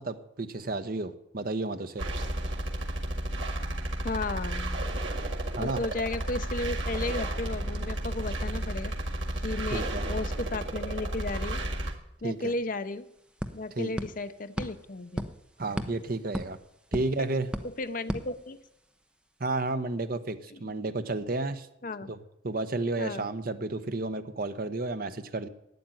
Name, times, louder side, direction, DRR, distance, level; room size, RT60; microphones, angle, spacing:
voice 1, 0.0-2.1 5.5-5.8 9.7-10.1 12.2-12.5 13.7-13.9 15.6-16.6 16.9-17.5 19.4-21.7 22.0-22.2 22.4-25.5, right 2 dB, 50° right, 10 dB, 0.9 m, -32 dB
sound 1, 2.0-11.9, right 1 dB, 80° right, 2.0 m, -32 dB
voice 2, 4.0-4.8 5.6-8.9 9.4-11.6 12.2-13.1 13.5-15.3 17.0-17.3 17.6-18.6 20.5-20.7 21.8-22.1 23.0-23.2, left 2 dB, 45° left, 11 dB, 0.7 m, -34 dB
sound 2, 12.3-12.4 12.6-19.0, equal, 5° right, 0.8 m, -38 dB
12.0 x 9.2 x 9.0 m, 0.84 s
head